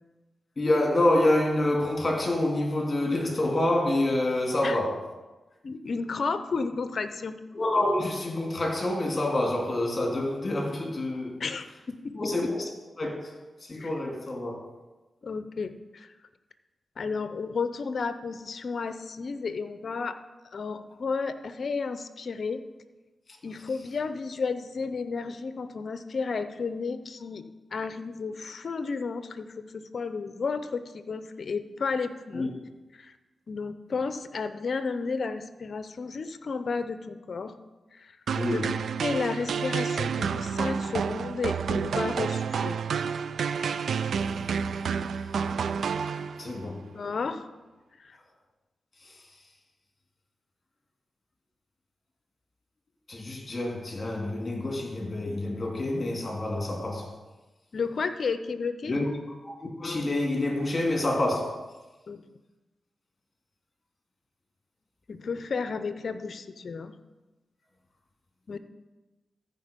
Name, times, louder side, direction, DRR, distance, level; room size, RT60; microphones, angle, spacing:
voice 1, 0.6-5.0 7.5-11.4 12.1-12.6 13.0-14.7 32.3-32.5 38.3-38.7 46.4-46.8 53.1-57.2 58.9-59.0 59.8-61.7, left 1 dB, 35° left, 2.8 m, -27 dB
voice 2, 5.6-7.4 11.4-12.5 13.8-13.9 15.2-16.1 17.0-20.2 20.5-22.6 23.4-27.4 27.7-32.5 32.9-33.1 33.5-37.5 37.9-38.2 38.5-38.7 39.0-42.8 46.6-47.5 48.0-48.2 57.7-58.9 62.1-62.2 65.1-66.9 68.5-68.6, left 4 dB, 60° left, 0.7 m, -32 dB
sound 1, 38.3-46.6, right 6 dB, 80° right, 0.3 m, -29 dB
14.0 x 5.0 x 5.2 m
cardioid pair, 65°, 0 cm